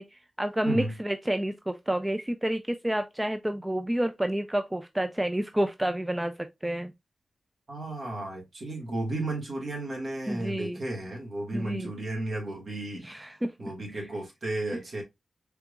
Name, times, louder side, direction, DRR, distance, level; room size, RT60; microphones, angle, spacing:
voice 1, 0.0-6.3 6.6-6.9 10.3-10.8 11.5-11.9 13.0-13.5, right 1 dB, 10° right, 0.4 m, -29 dB
voice 2, 0.6-1.0 7.7-13.1 13.6-15.0, right 2 dB, 60° right, 2.0 m, -33 dB
4.4 x 3.4 x 2.4 m
wide cardioid pair, 90°, 0 cm